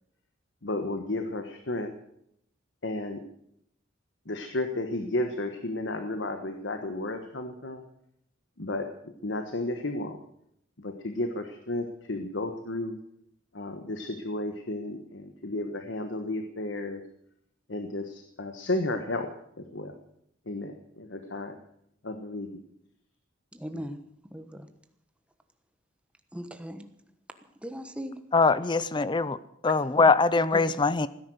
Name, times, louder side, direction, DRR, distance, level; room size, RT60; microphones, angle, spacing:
voice 1, 0.6-1.9 2.8-3.2 4.3-7.8 8.6-10.2 10.8-13.0 13.5-17.0 17.7-19.3 19.6-19.9 20.5-21.6 22.0-22.6, left 2 dB, 70° left, 1.3 m, -33 dB
voice 2, 23.5-24.0 24.3-24.7 26.3-26.9 27.6-28.2 29.7-29.8 30.5-30.7, equal, 5° right, 1.3 m, -38 dB
voice 3, 28.3-29.4 29.6-31.1, left 4 dB, 25° left, 0.5 m, -22 dB
16.5 x 10.5 x 7.9 m
head